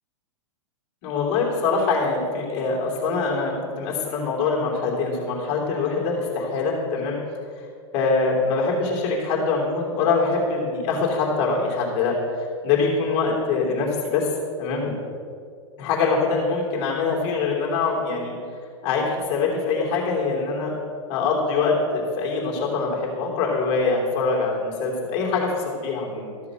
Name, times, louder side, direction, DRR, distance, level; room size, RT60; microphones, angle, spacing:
voice 1, 1.0-7.2 7.9-14.3 14.6-14.8 15.8-18.3 18.8-20.7 21.1-26.3, left 4 dB, 35° left, -2 dB, 3.2 m, -24 dB
13.0 x 6.7 x 6.1 m, 2.2 s
supercardioid pair, 160°, 16 cm